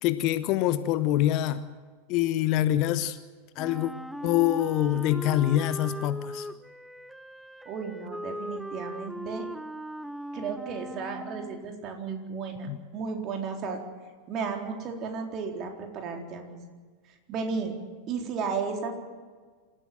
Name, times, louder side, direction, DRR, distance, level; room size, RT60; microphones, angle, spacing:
voice 1, 0.0-1.6 2.1-3.2 3.6-3.9 4.2-6.5 12.7-12.8, left 13 dB, 40° left, 14 dB, 1.0 m, -25 dB
Wind instrument woodwind instrument, 3.6-11.7, right 1 dB, ahead, 0.6 m, -39 dB
voice 2, 7.7-9.5 10.3-13.8 14.3-16.7 17.3-17.7 18.1-18.9, right 5 dB, 35° right, 2 dB, 4.1 m, -34 dB
27.5 x 15.0 x 7.7 m, 1.5 s
figure-of-eight pair, 90°, 0 cm